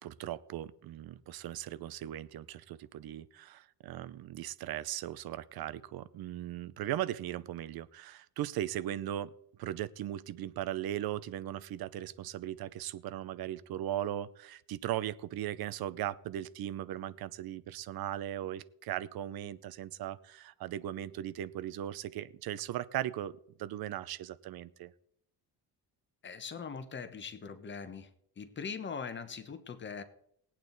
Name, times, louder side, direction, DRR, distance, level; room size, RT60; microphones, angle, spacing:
voice 1, 0.0-9.3 9.6-24.9, right 12 dB, 65° right, 17 dB, 0.7 m, -38 dB
voice 2, 26.2-28.1 28.4-30.0, left 6 dB, 30° left, 10 dB, 1.0 m, -41 dB
19.5 x 8.8 x 4.0 m, 0.72 s
cardioid pair, 165°, 40 cm